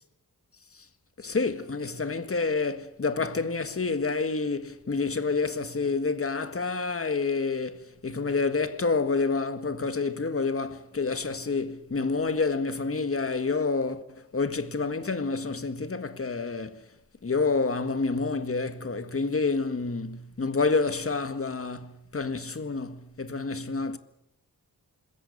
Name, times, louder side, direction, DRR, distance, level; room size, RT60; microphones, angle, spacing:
voice 1, 1.2-16.8 17.2-24.0, left 4 dB, 35° left, 1.7 m, -28 dB
26.5 x 21.5 x 6.8 m
wide cardioid pair, 130°, 38 cm